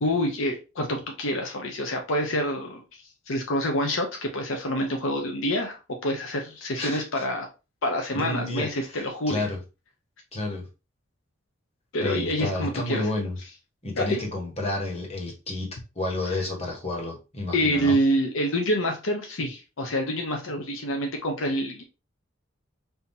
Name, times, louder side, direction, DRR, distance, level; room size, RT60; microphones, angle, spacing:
voice 1, 0.0-2.8 3.3-7.5 7.8-9.5 11.9-13.1 14.0-14.2 17.5-21.8, equal, 75° left, 3 dB, 0.7 m, -27 dB
voice 2, 6.8-7.2 8.1-9.6 10.3-10.6 12.0-13.4 13.8-15.7 15.9-18.0, left 2 dB, 30° left, 0 dB, 1.5 m, -30 dB
5.6 x 2.8 x 2.7 m, 0.29 s
head